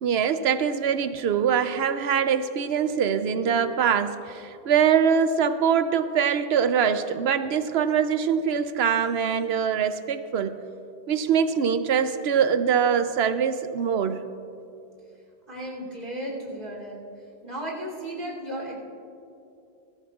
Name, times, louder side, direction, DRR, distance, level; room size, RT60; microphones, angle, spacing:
voice 1, 0.0-10.6 11.1-14.2, right 7 dB, 80° right, 11 dB, 0.9 m, -23 dB
voice 2, 15.5-17.0 17.4-18.8, right 1 dB, 55° right, -2 dB, 3.3 m, -34 dB
22.0 x 14.0 x 2.4 m, 2.7 s
omnidirectional pair, 1.1 m